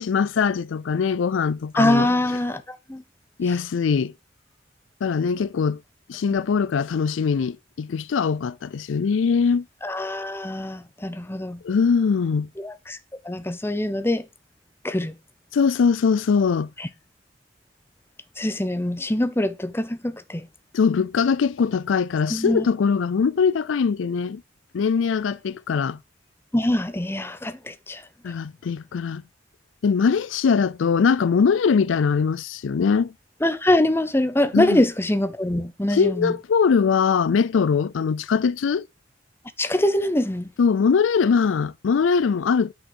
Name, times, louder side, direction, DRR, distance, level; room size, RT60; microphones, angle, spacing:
voice 1, 0.0-2.1 3.4-4.1 5.0-5.8 6.1-9.6 11.6-12.5 15.5-16.7 20.7-24.4 24.7-26.0 28.2-29.2 29.8-33.1 34.5-34.8 35.9-38.9 40.6-42.7, left 5 dB, 85° left, 0.4 m, -21 dB
voice 2, 1.8-3.0 6.3-6.4 9.8-11.6 12.6-13.0 13.2-14.2 14.8-15.1 16.8-16.9 18.4-20.5 22.3-22.7 26.5-28.0 33.4-36.3 39.6-40.5, left 1 dB, 10° left, 0.8 m, -24 dB
8.1 x 6.3 x 6.1 m
head